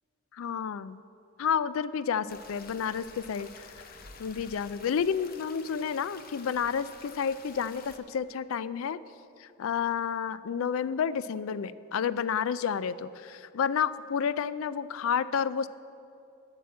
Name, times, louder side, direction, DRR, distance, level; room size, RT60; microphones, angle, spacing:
voice 1, 0.3-1.0 1.4-3.5 4.2-9.0 9.4-15.7, left 7 dB, 70° left, 16 dB, 0.3 m, -30 dB
sound 1, 2.3-8.0, left 4 dB, 45° left, 0.8 m, -50 dB
8.5 x 6.3 x 8.1 m, 2.6 s
head